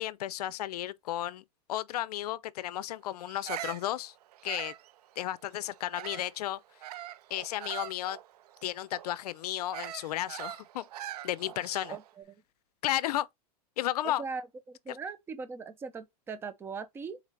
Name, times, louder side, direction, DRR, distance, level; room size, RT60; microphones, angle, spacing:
voice 1, 0.0-1.4 1.7-4.1 4.4-4.7 5.2-6.6 7.3-8.2 8.6-10.9 11.2-12.0 12.8-13.3 13.8-14.2, left 13 dB, 80° left, 0.5 m, -33 dB
Bird vocalization bird call bird song, 3.3-6.4 6.8-12.1, right 13 dB, 80° right, 0.5 m, -43 dB
voice 2, 11.9-12.4 14.0-17.2, right 5 dB, 10° right, 0.5 m, -40 dB
4.4 x 4.0 x 2.5 m
supercardioid pair, 135°, 20 cm